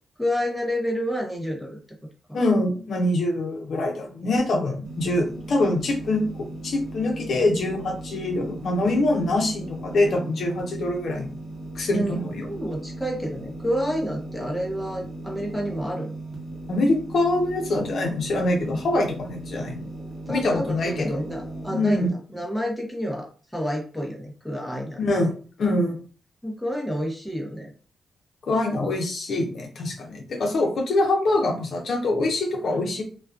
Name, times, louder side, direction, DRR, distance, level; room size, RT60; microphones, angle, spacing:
voice 1, 0.2-1.8 2.3-2.4 11.9-12.2 12.5-16.2 20.3-25.0 26.4-27.7, equal, ahead, -1 dB, 0.7 m, -29 dB
voice 2, 2.3-11.3 11.7-12.5 16.7-19.9 20.3-21.2 21.7-22.1 25.0-25.3 25.6-26.0 28.5-33.0, left 2 dB, 65° left, 1 dB, 0.6 m, -24 dB
sound 1, 4.8-22.1, right 1 dB, 45° right, 0.9 m, -37 dB
2.4 x 2.3 x 2.3 m, 0.40 s
cardioid pair, 90°, 0 cm